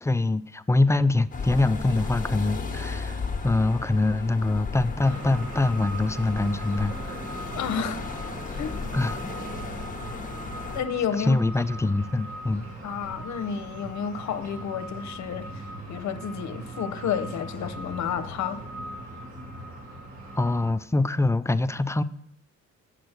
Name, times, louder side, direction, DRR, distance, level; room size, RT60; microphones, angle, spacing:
voice 1, 0.0-7.2 8.9-9.3 11.2-12.7 20.4-22.0, left 2 dB, 10° left, 0.3 m, -24 dB
sound 1, 1.3-10.8, left 4 dB, 25° left, 1.2 m, -35 dB
sound 2, 5.0-20.7, right 1 dB, 65° right, 3.8 m, -39 dB
voice 2, 7.5-8.0 8.6-8.8 10.7-11.4 12.8-18.7, left 7 dB, 65° left, 0.8 m, -31 dB
8.0 x 6.1 x 6.5 m
cardioid pair, 90°, 30 cm